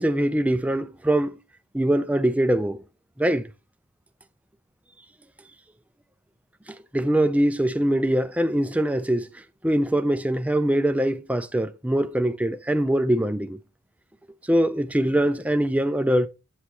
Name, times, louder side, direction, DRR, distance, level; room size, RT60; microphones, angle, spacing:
voice 1, 0.0-1.4 1.7-2.8 3.2-3.5 6.9-9.3 9.6-13.6 14.5-16.3, right 1 dB, 5° right, 0.4 m, -22 dB
8.2 x 8.1 x 2.9 m
head